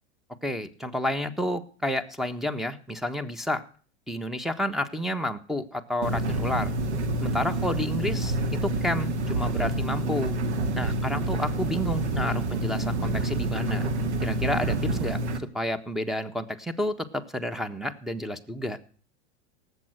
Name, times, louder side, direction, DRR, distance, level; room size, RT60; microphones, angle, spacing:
voice 1, 0.4-3.6 4.1-6.7 7.2-10.4 10.8-13.9 14.2-18.8, left 1 dB, ahead, 13 dB, 1.4 m, -30 dB
sound 1, 6.0-15.4, right 1 dB, 85° right, 2.0 m, -28 dB
18.5 x 8.1 x 6.0 m, 0.43 s
hypercardioid pair, 100°, 34 cm